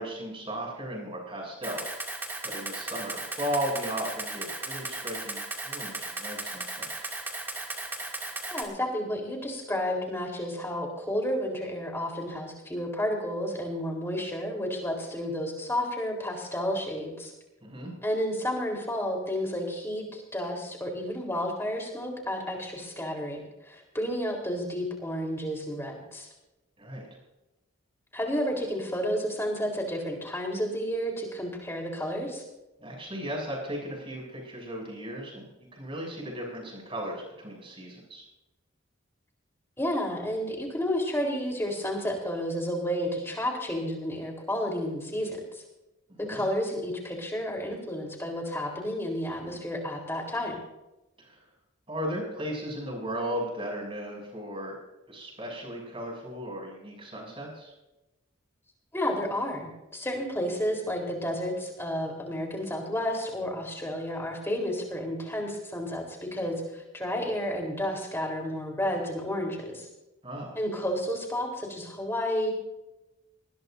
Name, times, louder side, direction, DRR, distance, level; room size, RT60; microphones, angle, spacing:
voice 1, 0.0-2.1 2.4-7.1 17.6-17.9 26.8-27.1 32.8-35.4 35.7-38.2 46.1-46.4 51.2-51.4 51.9-54.7 55.1-57.7 70.2-70.6, equal, 25° right, 0 dB, 7.2 m, -36 dB
Camera, 1.6-8.6, right 2 dB, 10° right, 2.4 m, -36 dB
voice 2, 8.5-17.3 18.0-23.4 23.6-26.3 28.1-32.4 39.8-45.6 46.3-50.5 58.9-69.9 70.6-72.5, equal, 10° left, 1 dB, 3.9 m, -31 dB
20.5 x 20.0 x 2.7 m, 0.96 s
head